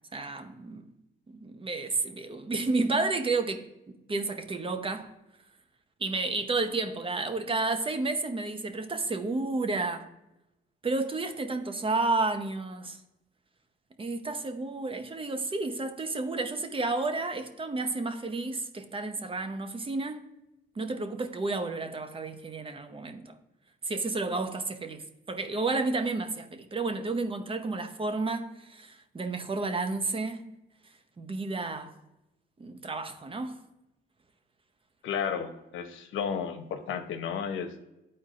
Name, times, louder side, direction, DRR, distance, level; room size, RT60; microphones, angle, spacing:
voice 1, 0.1-0.9 1.3-3.7 4.1-5.1 6.0-10.1 10.8-13.0 14.0-20.2 20.8-23.4 23.8-30.4 31.2-31.9 32.6-33.6, right 3 dB, 25° right, 0.8 m, -31 dB
voice 2, 35.0-37.8, left 7 dB, 80° left, 0.9 m, -33 dB
11.5 x 4.4 x 2.5 m
cardioid pair, 90°, 20 cm